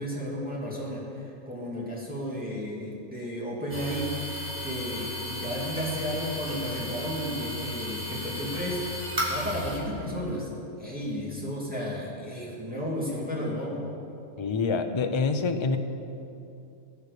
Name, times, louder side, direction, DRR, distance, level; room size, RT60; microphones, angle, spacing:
voice 1, 0.0-8.9 9.3-10.5 10.8-13.9, equal, 5° right, -6 dB, 2.7 m, -33 dB
sound 1, 3.7-9.8, left 1 dB, 45° right, 2.2 m, -34 dB
voice 2, 14.4-15.8, left 4 dB, 30° left, 7 dB, 0.5 m, -26 dB
16.0 x 8.1 x 6.8 m, 2.8 s
omnidirectional pair, 1.3 m